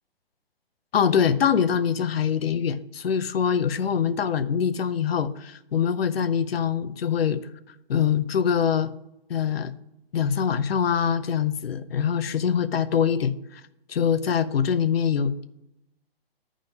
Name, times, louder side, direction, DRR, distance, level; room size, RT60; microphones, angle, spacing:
voice 1, 0.9-7.4 7.9-8.9 9.3-9.7 10.1-13.6 13.9-15.5, left 7 dB, 70° left, 12 dB, 0.7 m, -24 dB
10.0 x 3.8 x 5.2 m, 0.87 s
hypercardioid pair, 135°, 31 cm